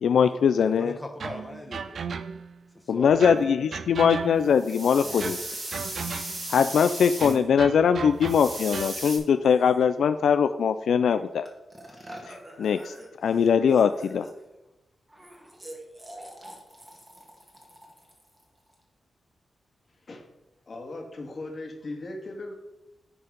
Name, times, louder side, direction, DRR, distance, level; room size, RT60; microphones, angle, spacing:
voice 1, 0.0-1.0 2.9-5.4 6.1-11.5 12.6-12.9 13.2-14.3, left 7 dB, 85° left, 10 dB, 0.3 m, -22 dB
voice 2, 0.8-2.0 2.7-3.4, left 1 dB, 15° left, 3 dB, 1.1 m, -40 dB
sound 1, 1.2-2.6 3.2-4.7 5.2-6.6 7.2-9.0, right 6 dB, 65° right, 0.5 m, -36 dB
sound 2, 3.4-3.5 4.7-4.8 5.0-5.5 7.1-7.5 9.4-10.0 11.1-11.2 11.4-14.5 15.1-18.8, right 1 dB, 15° right, 2.1 m, -46 dB
sound 3, 4.4-7.3 8.2-9.2, right 2 dB, 50° right, 3.2 m, -36 dB
voice 3, 20.7-22.6, left 2 dB, 45° left, 2 dB, 2.1 m, -38 dB
9.9 x 4.6 x 5.2 m, 0.98 s
wide cardioid pair, 95°, 0 cm